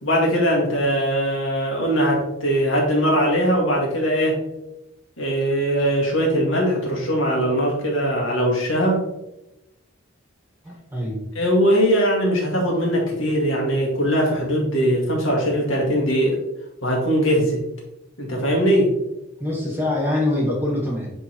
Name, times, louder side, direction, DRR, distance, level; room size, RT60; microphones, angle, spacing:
voice 1, 0.0-4.4 5.2-9.0 11.4-16.4 16.8-17.6 18.2-19.0, equal, 70° left, -1 dB, 2.0 m, -20 dB
voice 2, 10.6-11.2 19.4-21.1, left 1 dB, 10° right, -3 dB, 1.6 m, -24 dB
9.8 x 3.6 x 3.0 m, 0.91 s
head